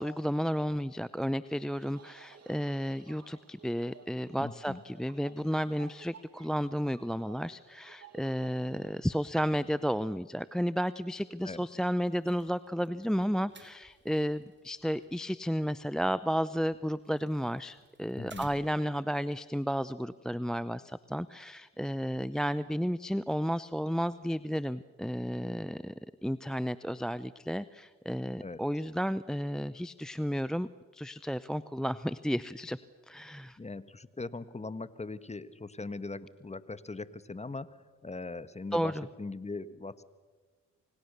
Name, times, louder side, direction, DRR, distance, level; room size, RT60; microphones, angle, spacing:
voice 1, 0.0-25.9 26.2-30.7 30.9-32.8 33.1-33.6 38.7-39.0, equal, ahead, 16 dB, 0.7 m, -32 dB
sound 1, 1.6-9.5, right 6 dB, 50° right, 2.3 m, -56 dB
voice 2, 4.4-4.8 11.4-11.6 18.2-18.5 28.4-28.6 33.6-40.0, left 3 dB, 20° left, 14 dB, 1.5 m, -40 dB
sound 2, 12.0-19.0, right 4 dB, 35° right, 3.3 m, -59 dB
29.0 x 25.0 x 6.8 m, 1.4 s
supercardioid pair, 55°, 33 cm